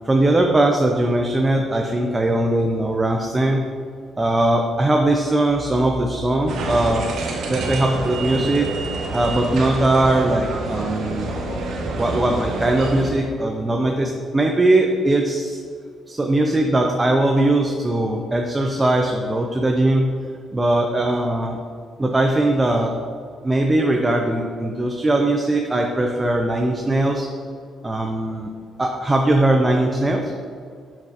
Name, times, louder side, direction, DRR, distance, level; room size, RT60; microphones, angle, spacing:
voice 1, 0.0-3.7 4.2-7.1 7.5-8.7 9.1-11.3 12.0-15.6 16.1-20.1 20.5-21.6 22.0-22.9 23.4-27.3 27.8-28.5 28.8-30.3, right 1 dB, 20° right, 2 dB, 0.5 m, -20 dB
sound 1, 6.5-13.1, right 2 dB, 75° right, 1.0 m, -27 dB
6.6 x 5.9 x 2.9 m, 2.2 s
cardioid pair, 90°, 0 cm